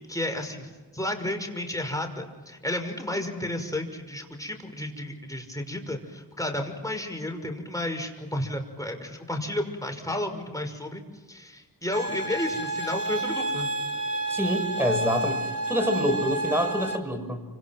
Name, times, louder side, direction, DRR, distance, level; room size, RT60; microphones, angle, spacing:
voice 1, 0.0-11.0 11.3-13.7, left 1 dB, 10° left, 4 dB, 5.9 m, -32 dB
sound 1, 11.9-17.0, right 2 dB, 30° left, 3.8 m, -30 dB
voice 2, 14.3-15.4 15.7-17.4, equal, 5° right, 7 dB, 6.3 m, -26 dB
30.0 x 26.5 x 6.2 m, 1.3 s
cardioid pair, 50°, 36 cm